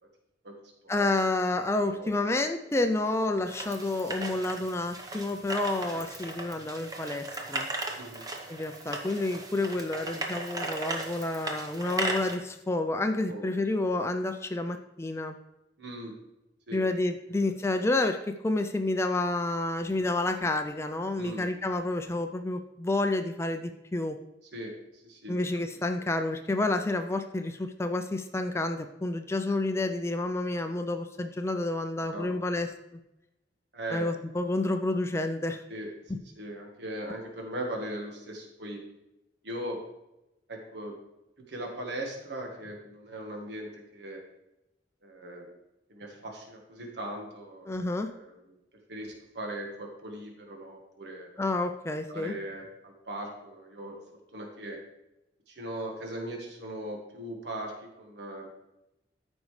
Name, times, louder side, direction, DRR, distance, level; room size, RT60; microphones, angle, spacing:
voice 1, 0.9-7.7 8.5-15.3 16.7-24.2 25.3-32.7 33.9-35.6 47.7-48.1 51.4-52.3, left 2 dB, 15° left, 7 dB, 0.4 m, -29 dB
voice 2, 1.6-2.3 5.9-6.0 8.0-8.2 13.3-13.5 15.8-16.1 16.7-16.8 17.3-17.4 21.1-21.5 24.5-24.7 25.0-25.3 31.9-32.3 33.7-34.0 35.7-35.9 36.4-38.8 39.4-39.8 40.5-41.0 41.5-44.2 45.0-45.5 45.9-47.7 48.1-48.6 48.9-51.3 52.1-54.0 54.3-54.8 55.5-58.5, right 1 dB, 70° right, 1 dB, 1.4 m, -39 dB
sound 1, 3.5-12.4, right 2 dB, 20° right, 0.9 m, -37 dB
13.5 x 5.3 x 3.2 m, 0.93 s
head